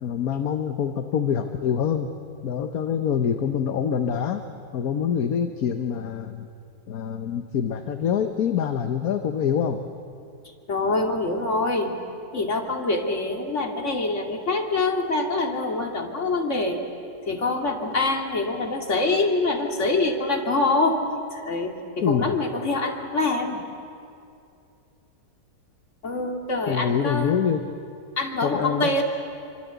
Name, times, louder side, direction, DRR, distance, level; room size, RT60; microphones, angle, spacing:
voice 1, 0.0-2.1 2.4-4.4 4.7-6.5 6.9-9.8 22.0-22.3 26.7-27.6 28.4-29.0, left 8 dB, 60° left, 7 dB, 1.4 m, -25 dB
voice 2, 10.7-11.9 12.3-16.8 17.2-21.0 21.3-23.6 26.0-27.4 28.2-29.0, left 2 dB, 45° left, 3 dB, 2.7 m, -25 dB
26.5 x 25.5 x 8.2 m, 2.5 s
omnidirectional pair, 1.8 m